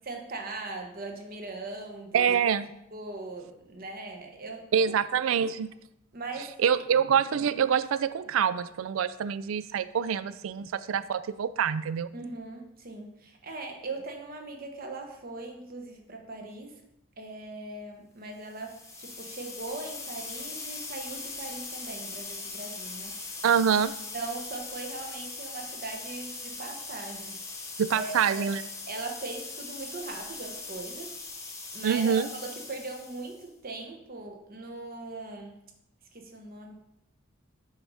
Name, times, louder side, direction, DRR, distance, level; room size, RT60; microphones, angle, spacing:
voice 1, 0.0-2.4 2.9-4.9 5.2-5.4 6.1-6.6 12.1-16.7 17.2-23.2 24.1-35.5 36.1-36.7, right 3 dB, 45° right, 2 dB, 1.1 m, -40 dB
voice 2, 2.1-2.7 4.7-5.7 6.6-12.1 23.4-23.9 27.8-28.6 31.8-32.3, right 7 dB, 85° right, 15 dB, 0.4 m, -25 dB
sound 1, 18.5-33.5, left 3 dB, 15° left, 0.9 m, -40 dB
6.8 x 4.0 x 4.8 m, 0.83 s
head